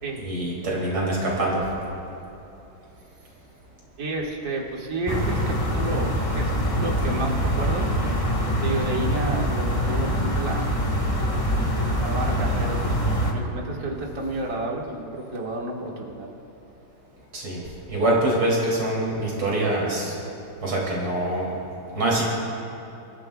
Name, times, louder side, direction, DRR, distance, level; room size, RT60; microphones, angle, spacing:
voice 1, 0.2-1.6 12.4-12.6 17.3-17.6 17.9-20.1 20.6-21.5 21.9-22.2, right 1 dB, 70° right, -4 dB, 3.7 m, -24 dB
voice 2, 4.0-7.9 8.5-10.7 12.0-13.0 13.3-16.3, right 2 dB, 40° right, -2 dB, 2.0 m, -31 dB
sound 1, 5.1-13.3, equal, 20° left, 1.2 m, -24 dB
28.0 x 14.0 x 2.3 m, 2.8 s
omnidirectional pair, 2.2 m